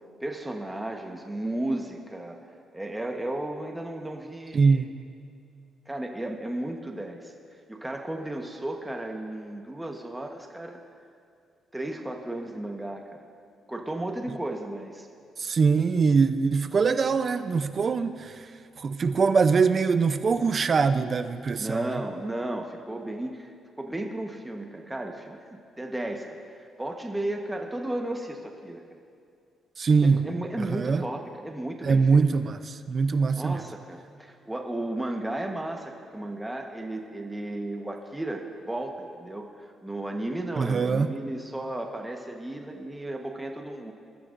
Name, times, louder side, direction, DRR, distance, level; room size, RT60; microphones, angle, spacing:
voice 1, 0.2-2.4 2.7-4.8 5.9-7.3 7.7-10.8 11.7-13.2 13.7-15.1 21.6-23.5 23.8-26.3 26.5-28.8 30.0-32.3 33.4-43.9, right 1 dB, 10° right, 2 dB, 1.3 m, -34 dB
voice 2, 4.5-4.9 15.4-18.5 18.8-21.9 29.8-30.2 30.6-31.0 31.8-33.7 40.6-41.1, right 5 dB, 45° right, 10 dB, 0.7 m, -23 dB
21.5 x 13.5 x 2.6 m, 2.4 s
cardioid pair, 90°, 0 cm